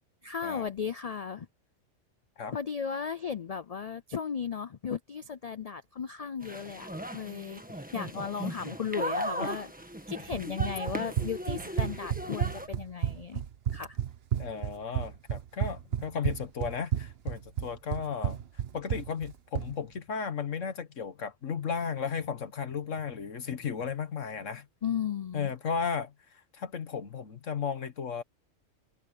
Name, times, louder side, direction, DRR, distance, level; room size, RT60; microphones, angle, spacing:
voice 1, 0.2-1.5 2.5-9.7 10.1-13.4 13.7-14.0 24.8-25.5, left 7 dB, 60° left, 0.4 m, -35 dB
sound 1, 6.4-12.7, right 1 dB, 5° right, 1.5 m, -38 dB
Run, 10.3-19.7, right 10 dB, 55° right, 1.1 m, -32 dB
voice 2, 14.4-18.4 18.7-24.6 25.3-28.2, left 6 dB, 75° left, 1.7 m, -35 dB
omnidirectional pair, 1.3 m